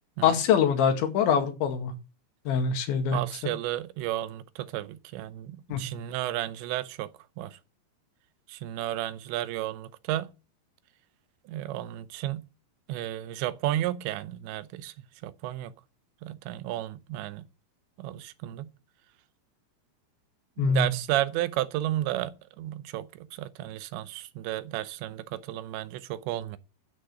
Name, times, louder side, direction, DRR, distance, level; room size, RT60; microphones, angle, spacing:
voice 1, 0.2-1.9 2.5-3.5 5.7-5.8 20.6-20.9, left 7 dB, 90° left, 4.5 m, -24 dB
voice 2, 3.1-7.1 7.4-7.5 8.5-10.3 11.5-12.4 12.9-14.9 15.2-15.7 16.2-17.4 18.0-18.7 20.6-26.6, right 14 dB, 85° right, 3.1 m, -32 dB
13.0 x 8.6 x 6.6 m
omnidirectional pair, 5.1 m